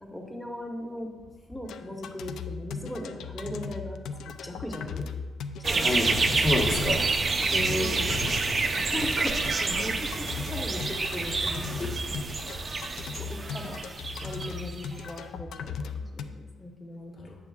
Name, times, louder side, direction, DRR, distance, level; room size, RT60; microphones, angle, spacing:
voice 1, 0.0-1.1 1.5-4.0 4.3-5.1 5.7-6.7 7.8-8.1 8.9-12.3 13.2-13.8 14.2-17.3, left 1 dB, 10° left, 1 dB, 0.8 m, -38 dB
sound 1, 1.7-16.3, left 5 dB, 75° left, 0.3 m, -38 dB
sound 2, 5.6-15.0, right 3 dB, 30° right, 0.4 m, -28 dB
voice 2, 5.8-8.4 11.8-11.9 13.6-13.7 17.2-17.3, left 2 dB, 40° left, 0 dB, 1.1 m, -30 dB
8.7 x 6.8 x 2.3 m, 1.4 s
cardioid pair, 150°, 0 cm